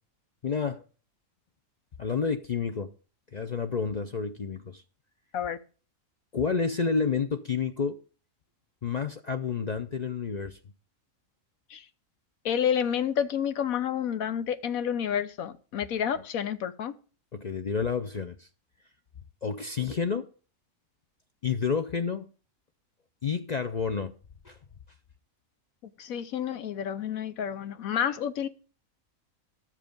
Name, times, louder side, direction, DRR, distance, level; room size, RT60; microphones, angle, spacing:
voice 1, 0.4-0.8 2.0-2.9 3.3-4.8 6.3-8.0 8.8-10.6 16.1-16.2 17.3-18.5 19.4-20.3 21.4-22.3 23.2-24.1 24.4-24.6, left 5 dB, 50° left, 0.5 m, -29 dB
voice 2, 12.4-16.9 26.0-28.5, left 8 dB, 85° left, 1.3 m, -29 dB
12.5 x 7.5 x 5.2 m
omnidirectional pair, 1.4 m